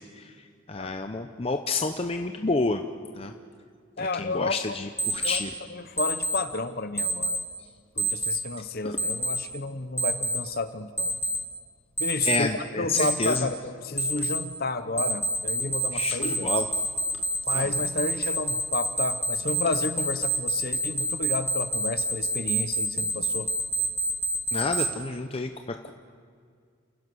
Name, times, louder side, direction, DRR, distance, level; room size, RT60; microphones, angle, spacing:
voice 1, 0.7-2.8 3.2-3.3 4.0-5.5 12.3-13.5 15.9-16.7 17.5-17.6 24.5-25.5 25.8-25.9, left 3 dB, 30° left, 6 dB, 0.7 m, -29 dB
voice 2, 4.0-4.8 5.2-5.4 5.7-7.4 8.0-11.1 12.0-12.5 12.8-16.5 17.5-23.5, left 3 dB, 45° left, 11 dB, 1.0 m, -31 dB
Alarm, 5.0-5.4 6.0-6.4 7.0-7.4 8.0-8.4 9.0-9.4 10.0-10.4 11.0-11.4 12.0-12.4 13.0-13.4 14.0-14.4 15.0-24.9, right 1 dB, 10° left, 1.6 m, -26 dB
29.0 x 16.0 x 6.3 m, 2.1 s
head